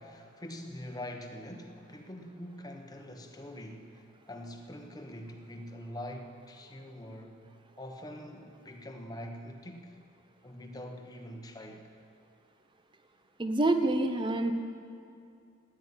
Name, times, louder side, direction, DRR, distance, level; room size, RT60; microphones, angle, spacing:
voice 1, 0.0-7.4 7.8-10.0 10.4-11.9, left 1 dB, 20° left, 3 dB, 1.1 m, -44 dB
voice 2, 13.4-14.5, right 2 dB, 20° right, 7 dB, 0.9 m, -27 dB
14.0 x 10.0 x 9.7 m, 2.4 s
head